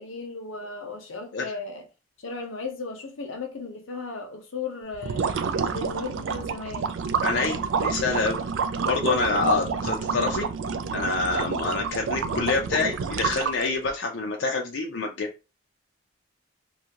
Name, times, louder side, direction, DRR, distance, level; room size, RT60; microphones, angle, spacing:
voice 1, 0.0-1.9 2.2-5.4 5.7-6.9, left 3 dB, 90° left, 0.8 m, -36 dB
sound 1, 4.9-13.9, right 5 dB, 70° right, 0.3 m, -29 dB
voice 2, 7.2-8.4 8.8-10.5 10.9-15.3, left 3 dB, 65° left, 0.4 m, -26 dB
2.6 x 2.4 x 2.8 m
head